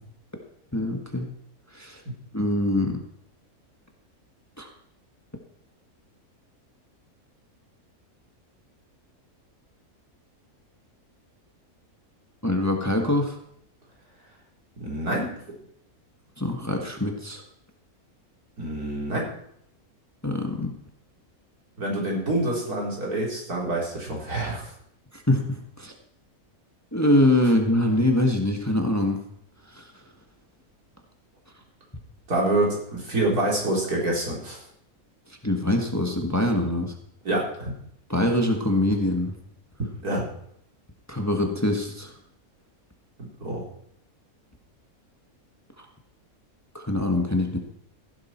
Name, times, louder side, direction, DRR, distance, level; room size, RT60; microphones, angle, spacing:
voice 1, 0.7-1.3 1.7-2.0 2.3-3.0 4.6-4.7 12.4-13.4 16.4-17.4 20.2-20.8 25.1-25.9 26.9-29.2 29.7-29.9 35.4-36.9 38.1-39.4 41.1-42.1 46.7-47.6, left 1 dB, 10° left, 3 dB, 1.5 m, -24 dB
voice 2, 14.8-15.3 18.6-19.3 21.8-24.7 32.3-34.6 37.2-37.7 40.0-40.2 43.4-43.6, right 1 dB, 85° right, -3 dB, 4.8 m, -26 dB
15.0 x 11.5 x 4.5 m, 0.71 s
omnidirectional pair, 1.5 m